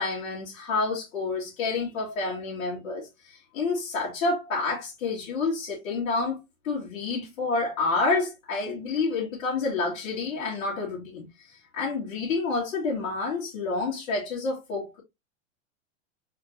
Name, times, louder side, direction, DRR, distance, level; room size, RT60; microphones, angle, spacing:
voice 1, 0.0-15.0, left 3 dB, 75° left, 2.3 m, -29 dB
4.4 x 3.4 x 2.7 m
supercardioid pair, 130°, 40 cm